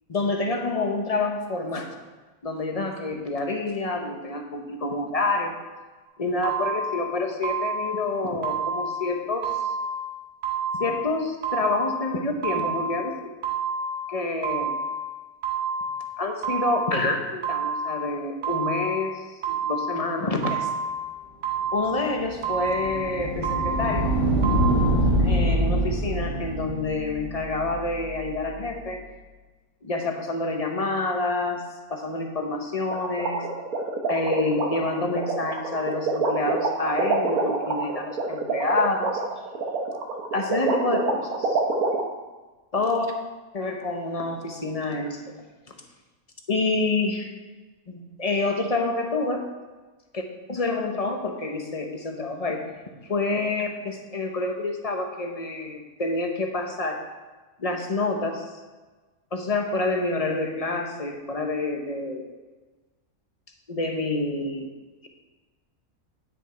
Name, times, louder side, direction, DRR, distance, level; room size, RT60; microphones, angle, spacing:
voice 1, 0.1-1.9 2.4-5.6 6.2-9.5 10.7-13.1 14.1-14.8 16.2-20.7 21.7-24.1 25.2-29.0 29.8-31.6 31.9-33.5 34.1-39.2 40.3-41.6 42.7-43.1 43.5-45.4 46.5-47.3 47.9-49.5 50.5-52.6 53.1-57.0 57.6-58.4 59.3-62.3 63.7-64.7, left 2 dB, 30° left, 3 dB, 0.9 m, -27 dB
sound 1, 6.4-7.0 7.4-8.0 8.4-9.0 9.4-10.0 10.4-11.0 11.4-12.0 12.4-13.0 13.4-14.0 14.4-15.0 15.4-16.0 16.4-17.0 17.4-18.0 18.4-19.0 19.4-20.0 20.4-21.0 21.4-22.0 22.4-23.0 23.4-24.0 24.4-24.6, right 4 dB, 55° right, 3.4 m, -28 dB
sound 2, 21.8-28.7, right 1 dB, 35° right, 1.6 m, -25 dB
sound 3, 32.9-42.0, right 4 dB, 80° right, 1.5 m, -26 dB
10.0 x 6.6 x 4.4 m, 1.3 s
omnidirectional pair, 1.5 m